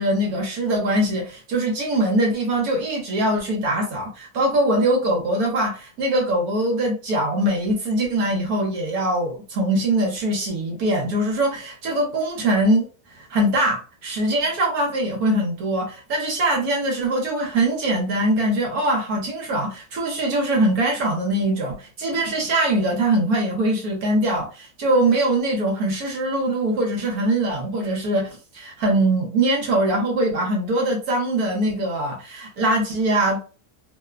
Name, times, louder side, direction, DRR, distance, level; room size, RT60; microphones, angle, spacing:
voice 1, 0.0-12.8 13.2-33.5, right 1 dB, 65° right, 1.2 m, -22 dB
3.0 x 2.0 x 2.4 m
omnidirectional pair, 1.9 m